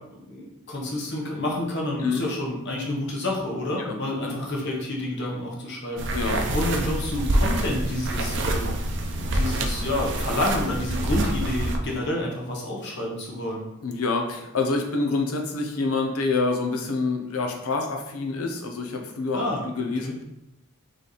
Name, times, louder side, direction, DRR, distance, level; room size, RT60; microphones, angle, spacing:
voice 1, 0.1-6.1 6.5-8.8 9.1-13.6 19.3-19.6 20.0-20.1, left 1 dB, 50° left, -2 dB, 1.1 m, -29 dB
sound 1, 6.0-11.8, right 1 dB, 55° right, 0.5 m, -26 dB
voice 2, 6.1-6.4 13.8-20.2, left 3 dB, 80° left, 3 dB, 0.7 m, -27 dB
4.1 x 3.3 x 3.9 m, 0.88 s
head